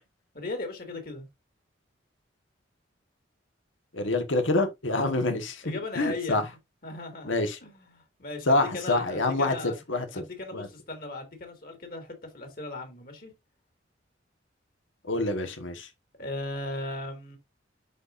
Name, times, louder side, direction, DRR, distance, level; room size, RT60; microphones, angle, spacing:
voice 1, 0.3-1.3 4.9-5.2 5.6-6.4 6.8-7.3 7.6-9.8 10.1-13.3 16.2-17.4, left 2 dB, 50° left, 2.4 m, -37 dB
voice 2, 3.9-5.5 5.9-6.4 7.3-7.6 8.5-10.2 10.5-10.7 15.0-15.9, left 2 dB, 85° left, 1.4 m, -26 dB
11.0 x 4.2 x 2.5 m
head